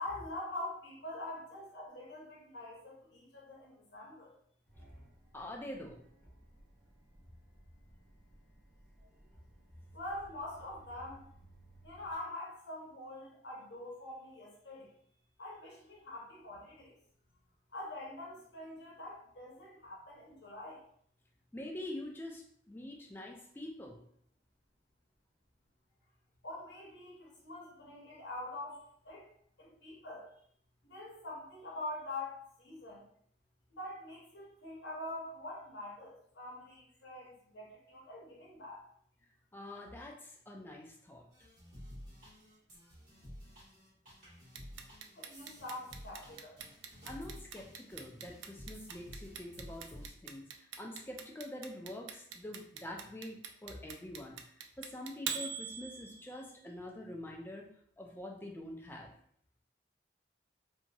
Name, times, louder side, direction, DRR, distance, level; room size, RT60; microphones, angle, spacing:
voice 1, 0.0-4.3 9.9-11.3 11.8-14.9 15.4-16.9 17.7-20.8 26.4-29.2 29.6-30.3 30.8-33.0 33.7-38.8 45.1-46.6, left 1 dB, 60° left, -4 dB, 0.8 m, -45 dB
sound 1, 4.6-12.1, right 1 dB, 5° right, 0.8 m, -59 dB
voice 2, 5.3-6.0 21.5-24.0 39.5-41.2 47.0-54.4 54.8-57.7 58.0-59.1, left 1 dB, 10° left, 0 dB, 0.3 m, -45 dB
sound 2, 41.3-50.1, equal, 40° right, 1.2 m, -52 dB
Clock, 44.6-56.5, right 7 dB, 70° right, 0.3 m, -42 dB
2.8 x 2.6 x 2.3 m, 0.65 s
head